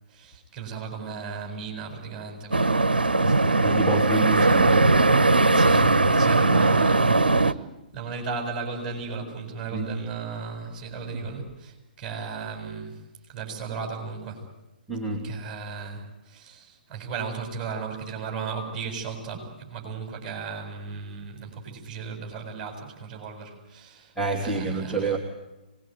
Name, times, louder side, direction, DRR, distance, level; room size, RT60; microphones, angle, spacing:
voice 1, 0.1-3.8 4.4-5.1 5.5-7.6 7.9-13.0 13.3-14.5 15.2-25.1, right 5 dB, 20° right, 1 dB, 7.6 m, -36 dB
sound 1, 2.5-7.5, right 2 dB, 75° right, 1.1 m, -19 dB
voice 2, 3.6-4.7 9.7-9.9 14.9-15.4 24.2-25.2, right 2 dB, 5° right, -5 dB, 2.9 m, -27 dB
25.0 x 21.0 x 9.2 m, 0.97 s
figure-of-eight pair, 125°, 5 cm